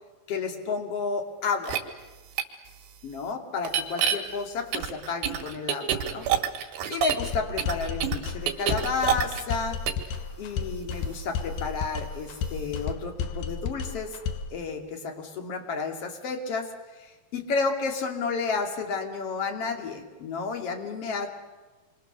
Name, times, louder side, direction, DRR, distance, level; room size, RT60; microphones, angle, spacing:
voice 1, 0.3-1.8 3.0-6.3 6.9-9.8 10.4-14.1 14.5-16.7 17.0-21.3, left 4 dB, 40° left, 4 dB, 2.9 m, -31 dB
sound 1, 1.6-1.8 2.4-2.5 3.6-4.2 4.7-7.3 7.6-9.6 9.9-10.1, right 9 dB, 80° right, 4.1 m, -26 dB
sound 2, 7.2-14.6, left 6 dB, 70° left, 2.7 m, -33 dB
28.0 x 24.5 x 6.8 m, 1.2 s
omnidirectional pair, 5.0 m